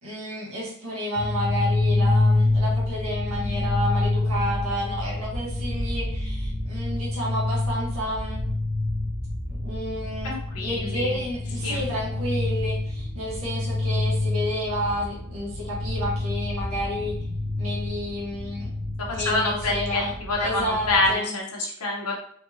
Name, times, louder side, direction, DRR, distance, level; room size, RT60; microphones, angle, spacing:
voice 1, 0.0-8.5 9.5-17.2 17.6-18.8 19.1-21.4, equal, 70° right, -6 dB, 1.4 m, -31 dB
sound 1, 1.1-21.1, left 2 dB, 35° left, 0.5 m, -27 dB
voice 2, 10.2-11.1 11.6-11.8 19.1-20.0 20.3-22.1, left 2 dB, 90° left, -1 dB, 1.1 m, -26 dB
4.4 x 2.8 x 2.8 m, 0.64 s
head